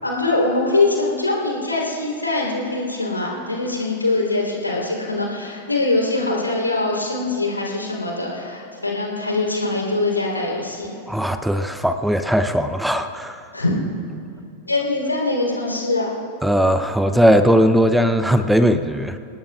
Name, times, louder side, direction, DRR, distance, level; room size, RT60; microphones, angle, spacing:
voice 1, 0.0-11.0 13.5-13.7 14.7-16.1, left 2 dB, 85° left, -2 dB, 3.7 m, -23 dB
voice 2, 11.1-13.4 16.4-19.2, equal, ahead, 10 dB, 0.7 m, -18 dB
28.5 x 18.5 x 2.5 m, 2.6 s
figure-of-eight pair, 90°, 0 cm